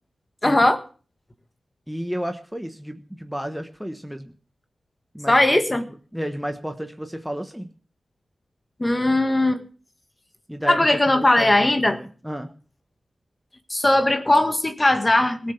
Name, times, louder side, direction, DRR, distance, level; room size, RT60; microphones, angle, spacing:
voice 1, 0.4-0.8 5.3-5.9 8.8-9.6 10.7-12.0 13.7-15.5, left 1 dB, 25° left, 8 dB, 1.7 m, -19 dB
voice 2, 1.9-4.3 5.1-5.6 6.1-7.7 10.5-12.5, equal, 5° right, 6 dB, 1.3 m, -32 dB
18.0 x 6.7 x 7.2 m, 0.40 s
wide cardioid pair, 80°, 0 cm